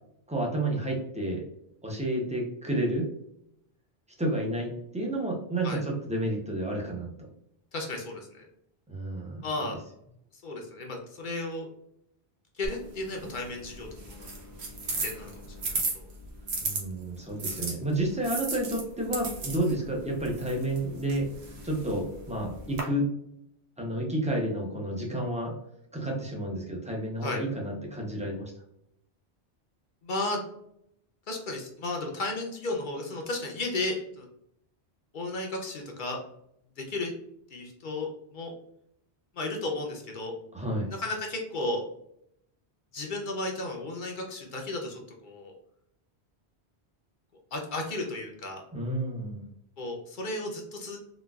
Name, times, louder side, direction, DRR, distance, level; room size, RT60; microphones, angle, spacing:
voice 1, 0.3-1.4 1.8-3.1 4.2-7.1 8.9-9.5 16.6-21.3 21.6-23.1 23.8-25.5 25.9-28.5 40.5-40.9 48.7-49.5, right 1 dB, 10° right, -1 dB, 0.5 m, -30 dB
voice 2, 7.7-8.5 9.4-9.8 10.3-11.7 12.5-14.3 15.0-15.3 15.9-16.0 17.4-17.7 27.2-27.4 30.0-30.4 31.3-34.3 35.1-36.2 36.8-37.1 37.5-38.5 39.3-40.3 41.0-41.8 42.9-45.5 47.5-48.6 49.8-51.0, left 2 dB, 55° left, 1 dB, 0.7 m, -34 dB
sound 1, 12.6-16.8 17.4-22.8, right 3 dB, 75° right, 1.1 m, -36 dB
3.9 x 2.3 x 2.3 m, 0.75 s
omnidirectional pair, 1.1 m